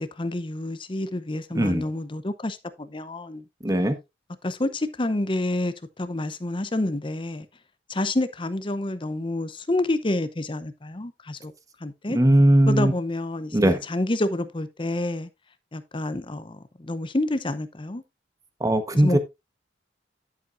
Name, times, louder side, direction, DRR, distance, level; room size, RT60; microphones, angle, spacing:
voice 1, 0.0-3.4 4.4-7.5 7.9-11.5 11.8-12.2 12.7-15.3 15.7-18.0 19.0-19.2, left 1 dB, 25° left, 0.7 m, -28 dB
voice 2, 3.6-4.0 12.1-12.9 13.5-13.8 18.6-19.2, right 1 dB, 20° right, 1.1 m, -19 dB
11.0 x 7.7 x 2.5 m
head